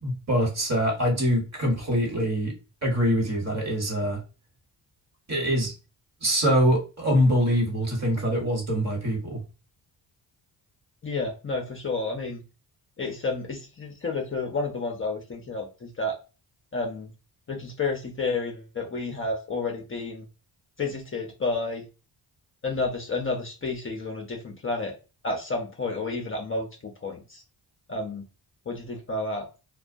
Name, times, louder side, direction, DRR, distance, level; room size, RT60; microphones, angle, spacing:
voice 1, 0.0-2.5 2.8-4.2 5.3-5.7 6.2-9.4, equal, 35° right, 1 dB, 1.3 m, -24 dB
voice 2, 11.0-12.4 13.0-16.1 16.7-17.1 17.5-20.3 20.8-21.8 22.6-25.0 25.2-27.4 27.9-28.2 28.7-29.5, left 3 dB, 30° left, 0 dB, 0.6 m, -30 dB
2.2 x 2.2 x 2.5 m, 0.32 s
cardioid pair, 65°, 44 cm